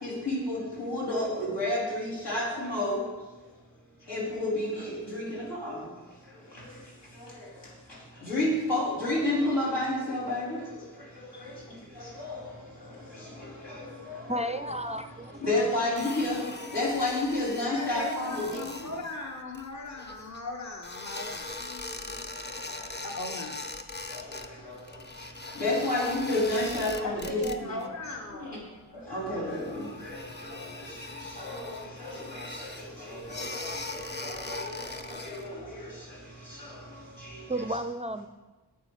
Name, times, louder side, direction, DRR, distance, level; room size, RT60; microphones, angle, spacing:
voice 1, 0.0-3.1 4.1-5.9 6.5-6.7 7.2-7.5 8.2-11.6 11.9-12.5 12.8-14.6 15.4-18.6 22.7-22.9 24.1-24.8 25.5-27.8 28.3-28.6 28.9-36.2 36.4-37.8, left 1 dB, 80° left, -6 dB, 4.5 m, -32 dB
voice 2, 14.3-15.4 37.5-38.3, right 1 dB, 15° right, 9 dB, 0.4 m, -32 dB
sound 1, 16.0-20.4 20.8-24.5 24.7-27.9 28.2-28.6 29.0-29.1 29.5-35.5, left 2 dB, 25° left, 0.8 m, -40 dB
voice 3, 17.7-21.6 23.0-23.5 27.0-28.7, left 2 dB, 40° left, 1 dB, 1.3 m, -38 dB
9.1 x 8.4 x 6.6 m, 1.2 s
wide cardioid pair, 90°, 41 cm